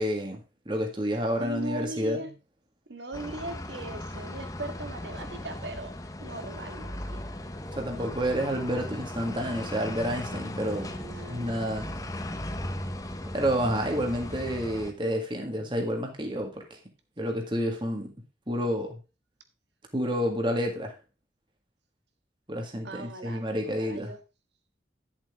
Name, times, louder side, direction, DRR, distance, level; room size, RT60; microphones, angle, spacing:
voice 1, 0.0-2.3 7.8-10.9 11.3-11.9 13.3-16.8 17.2-18.1 18.5-19.0 19.9-20.9 22.5-24.1, equal, 25° right, 1.9 m, -29 dB
voice 2, 1.4-2.3 2.9-7.2 10.7-11.9 22.8-24.2, right 2 dB, 80° right, 1.8 m, -39 dB
sound 1, 3.1-14.9, left 1 dB, 20° left, 0.9 m, -37 dB
11.0 x 7.5 x 3.6 m
head